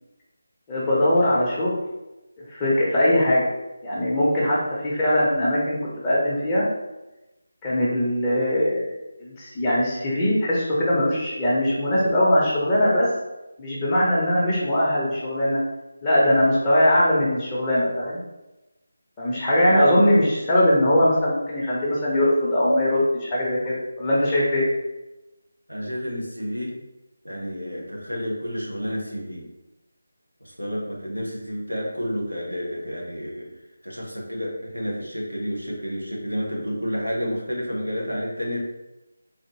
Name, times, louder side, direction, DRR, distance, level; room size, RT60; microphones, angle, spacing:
voice 1, 0.7-1.7 2.5-3.4 3.8-6.7 7.6-8.9 9.2-13.1 13.6-15.6 16.0-18.2 19.2-24.6, left 1 dB, 15° left, -8 dB, 0.8 m, -21 dB
voice 2, 25.7-26.8 27.2-29.5 30.4-33.6 33.8-38.6, equal, 85° right, -3 dB, 1.1 m, -30 dB
3.8 x 2.9 x 2.9 m, 1.0 s
figure-of-eight pair, 160°, 0 cm